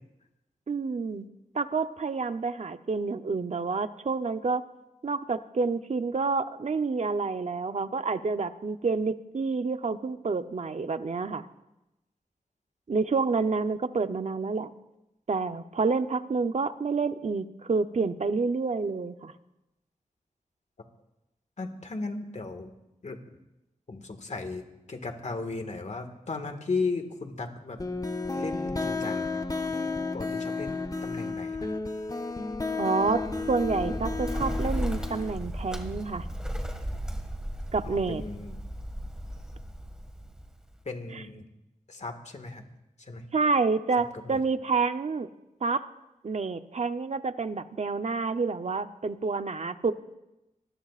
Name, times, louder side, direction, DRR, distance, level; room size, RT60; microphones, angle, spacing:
voice 1, 0.7-1.3 1.5-4.6 5.0-11.5 12.9-14.7 15.3-19.3 32.8-33.2 33.5-36.3 37.7-38.2 41.1-41.2 43.3-45.3 45.6-45.9 46.2-49.9, right 4 dB, 55° right, 9 dB, 0.8 m, -28 dB
voice 2, 21.6-22.7 23.0-23.4 23.9-27.8 28.3-31.8 37.8-38.6 40.8-41.4 41.9-42.6 43.1-43.3 44.3-44.4, left 3 dB, 55° left, 6 dB, 1.8 m, -36 dB
sound 1, 27.8-35.3, left 3 dB, 25° left, 0.9 m, -32 dB
Bird, 33.0-40.8, equal, 5° right, 1.9 m, -35 dB
25.0 x 20.5 x 2.5 m, 0.94 s
wide cardioid pair, 90°, 14 cm